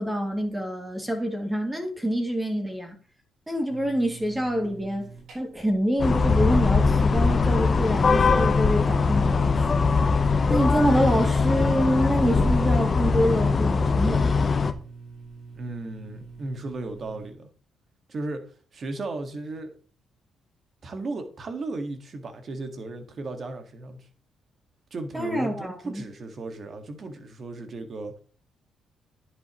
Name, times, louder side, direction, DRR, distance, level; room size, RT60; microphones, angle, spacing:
voice 1, 0.0-3.0 3.5-5.1 5.3-9.9 10.5-14.2 25.1-26.0, equal, 10° right, 2.4 m, -26 dB
sound 1, 3.7-17.3, right 4 dB, 75° right, 4.1 m, -46 dB
sound 2, 6.0-14.7, left 4 dB, 35° left, 0.9 m, -21 dB
voice 2, 15.5-17.5 18.1-18.4 18.7-19.7 20.8-24.1 24.9-28.2, right 2 dB, 45° right, 1.7 m, -35 dB
10.0 x 7.9 x 3.1 m
cardioid pair, 90°, 0 cm